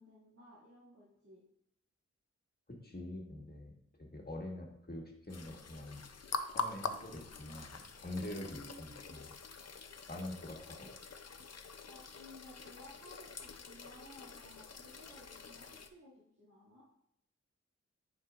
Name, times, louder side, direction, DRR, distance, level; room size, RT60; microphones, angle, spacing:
voice 1, 0.0-1.4 8.3-9.2 11.9-16.8, equal, 60° right, -10 dB, 2.2 m, -57 dB
voice 2, 2.7-3.7 4.0-6.0 6.5-9.3 10.1-10.9, left 1 dB, 35° left, 0 dB, 1.5 m, -45 dB
sound 1, 5.3-15.9, left 4 dB, 60° left, 0.5 m, -45 dB
10.0 x 4.4 x 2.4 m, 0.74 s
wide cardioid pair, 60°, 29 cm